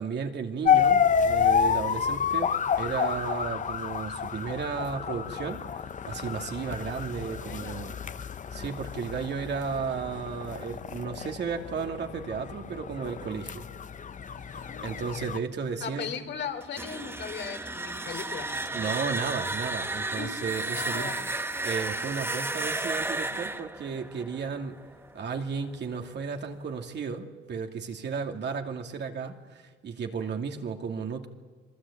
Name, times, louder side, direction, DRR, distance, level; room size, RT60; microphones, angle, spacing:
voice 1, 0.0-7.9 8.5-13.6 14.5-16.1 18.7-21.1 21.6-24.8 25.1-31.3, right 5 dB, 60° right, 4 dB, 2.6 m, -34 dB
sound 1, 0.6-15.4, left 7 dB, 40° left, 0.8 m, -29 dB
voice 2, 7.4-7.9 14.5-15.2 15.8-19.1 19.9-20.4 20.7-21.3, left 7 dB, 65° left, 6 dB, 3.3 m, -39 dB
sound 2, 16.6-25.4, right 2 dB, 10° right, 1.0 m, -33 dB
27.0 x 20.5 x 8.7 m, 1.4 s
cardioid pair, 90°, 20 cm